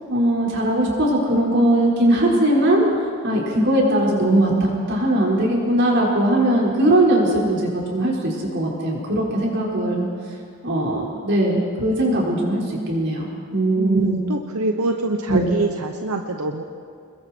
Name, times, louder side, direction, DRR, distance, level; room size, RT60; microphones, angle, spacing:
voice 1, 0.1-2.9 3.2-10.1 10.6-14.2 15.3-15.5, right 1 dB, 55° right, -3 dB, 5.1 m, -20 dB
voice 2, 13.8-16.6, right 3 dB, 90° right, 4 dB, 1.1 m, -25 dB
28.0 x 21.5 x 4.6 m, 2.2 s
head